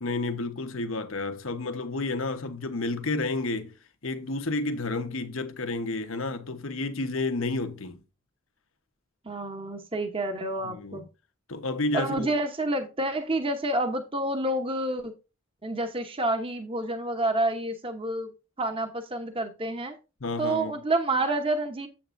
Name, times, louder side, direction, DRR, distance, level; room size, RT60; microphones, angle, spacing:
voice 1, 0.0-3.7 4.0-8.0 10.6-11.0 11.5-12.3 20.2-20.7, left 2 dB, 75° left, 1.2 m, -30 dB
voice 2, 9.2-11.1 11.9-15.1 15.6-18.3 18.6-20.0 20.4-21.9, right 2 dB, 25° right, 0.9 m, -28 dB
8.6 x 7.9 x 2.6 m
head